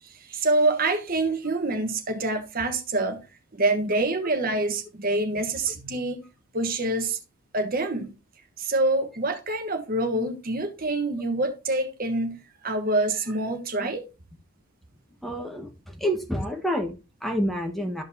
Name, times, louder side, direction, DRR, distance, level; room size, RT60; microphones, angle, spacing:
voice 1, 0.3-3.2 3.5-6.2 6.5-7.2 7.5-8.1 8.6-14.1, right 2 dB, 40° right, 1.1 m, -26 dB
voice 2, 15.2-18.0, equal, ahead, 1.2 m, -28 dB
13.0 x 5.2 x 2.7 m
head